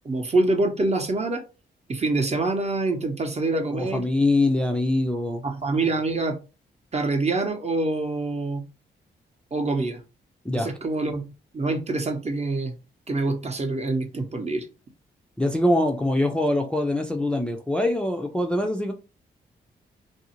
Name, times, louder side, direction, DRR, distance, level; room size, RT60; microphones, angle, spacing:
voice 1, 0.0-1.4 1.9-4.1 5.4-6.4 6.9-8.6 9.5-10.0 10.6-11.2 11.5-12.8 13.1-14.7, right 2 dB, 30° right, 0.8 m, -25 dB
voice 2, 3.7-5.4 10.4-10.7 15.4-18.9, left 1 dB, 5° left, 0.5 m, -23 dB
2.5 x 2.0 x 2.9 m
supercardioid pair, 45°, 20 cm